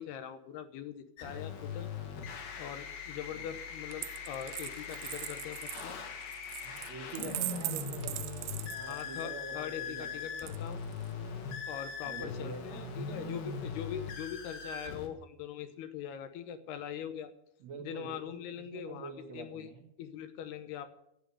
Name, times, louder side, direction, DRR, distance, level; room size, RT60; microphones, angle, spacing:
voice 1, 0.0-1.9 2.6-6.0 7.2-7.3 8.9-10.8 11.7-17.3 17.8-19.7 20.0-20.9, left 9 dB, 75° left, 10 dB, 2.6 m, -42 dB
sound 1, 1.2-15.1, left 6 dB, 60° left, 3.3 m, -41 dB
Coin (dropping), 3.9-9.3 10.4-11.1, right 18 dB, 85° right, 3.2 m, -41 dB
voice 2, 6.6-10.4 12.0-13.4 17.6-19.9, right 4 dB, 70° right, 2 dB, 1.6 m, -46 dB
11.5 x 8.7 x 9.7 m, 0.78 s
omnidirectional pair, 5.4 m